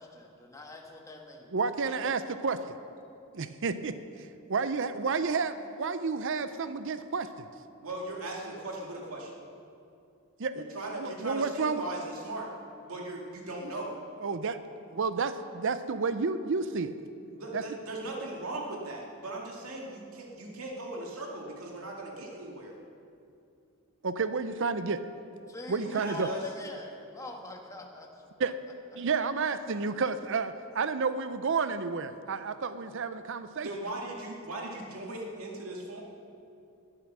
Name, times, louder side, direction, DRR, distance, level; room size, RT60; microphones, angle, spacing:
voice 1, 0.0-1.6 25.5-28.5 28.9-29.0, left 2 dB, 15° left, 1 dB, 1.5 m, -44 dB
voice 2, 1.5-2.6 3.3-3.9 4.5-7.5 10.4-10.6 11.0-11.8 14.2-14.6 14.9-16.9 17.5-17.6 24.0-25.0 25.7-26.3 28.4-28.5 29.0-33.7, right 4 dB, 65° right, 11 dB, 0.6 m, -30 dB
voice 3, 7.8-9.4 10.6-12.5 12.8-14.0 17.4-22.7 25.8-26.4 33.6-36.0, right 2 dB, 85° right, -1 dB, 2.2 m, -38 dB
20.0 x 8.8 x 6.2 m, 2.6 s
head